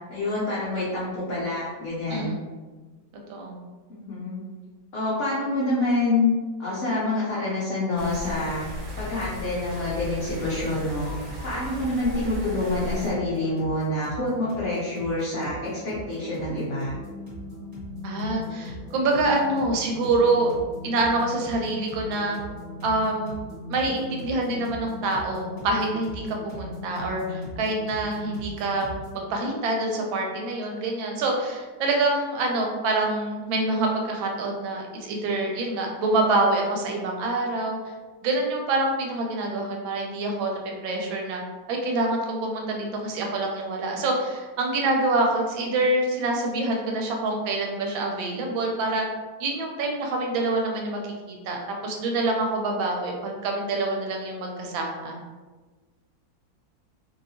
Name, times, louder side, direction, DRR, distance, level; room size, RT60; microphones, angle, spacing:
voice 1, 0.0-2.3 3.9-4.4 4.9-6.3 6.6-8.7 9.0-11.1 11.4-16.9, left 2 dB, 75° left, -8 dB, 0.6 m, -27 dB
sound 1, 8.0-13.1, left 1 dB, 65° right, 1.0 m, -36 dB
sound 2, 10.8-29.2, equal, 30° right, 1.1 m, -39 dB
voice 2, 18.0-20.5 20.8-22.4 22.8-23.4 23.7-37.8 38.2-41.4 41.7-49.1 49.4-51.0 51.5-55.2, right 2 dB, 85° right, 1 dB, 1.4 m, -26 dB
3.0 x 2.8 x 2.7 m, 1.3 s
omnidirectional pair, 2.1 m